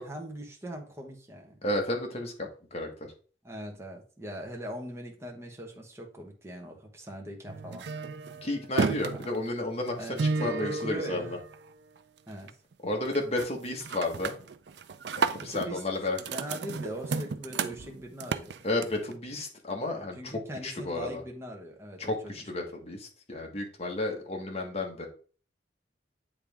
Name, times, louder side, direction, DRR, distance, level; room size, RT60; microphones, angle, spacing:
voice 1, 0.0-1.6 3.4-7.9 9.1-9.2 10.0-11.4 12.3-12.5 15.4-15.8 16.3-18.6 20.2-22.5, equal, 15° right, 1 dB, 1.3 m, -41 dB
voice 2, 1.6-2.3 2.7-3.1 8.4-9.9 10.4-11.3 12.8-14.3 15.2-16.2 18.6-20.3 20.6-21.2 22.0-25.1, left 2 dB, 35° left, 1 dB, 1.4 m, -32 dB
sound 1, 7.5-12.0 12.3-12.7 13.1-13.5 13.8-19.1, right 4 dB, 75° right, 0.5 m, -33 dB
8.7 x 3.4 x 3.5 m, 0.39 s
head